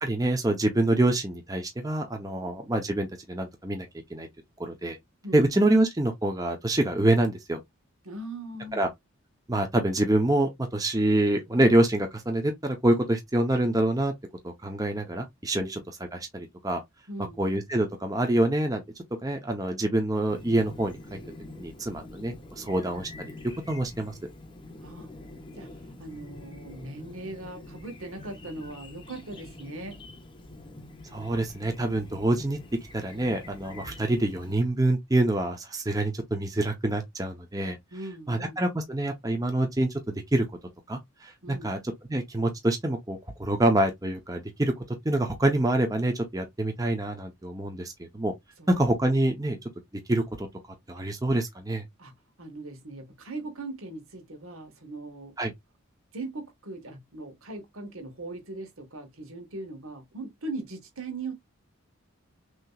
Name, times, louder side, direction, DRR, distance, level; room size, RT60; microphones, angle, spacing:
voice 1, 0.0-4.3 4.6-5.0 5.3-7.6 8.7-8.9 9.5-14.1 14.4-15.8 16.1-16.8 17.4-18.8 19.2-21.2 21.6-23.1 23.7-24.1 31.1-32.6 32.9-37.8 38.3-39.9 40.3-40.5 40.9-41.8 42.1-48.3 48.7-49.6 50.1-50.5 50.9-51.8 55.4-55.5, right 1 dB, 15° right, 0.8 m, -26 dB
voice 2, 8.0-8.9 15.5-15.8 17.1-17.4 24.8-25.1 25.6-25.7 26.0-30.0 32.1-32.2 37.9-38.6 41.4-41.7 48.6-48.8 51.0-51.1 52.0-52.1 52.4-55.3 56.1-61.3, right 2 dB, 80° right, 1.6 m, -39 dB
Chirp tweet, 20.3-34.5, left 2 dB, 25° left, 0.9 m, -46 dB
6.3 x 2.9 x 2.4 m
head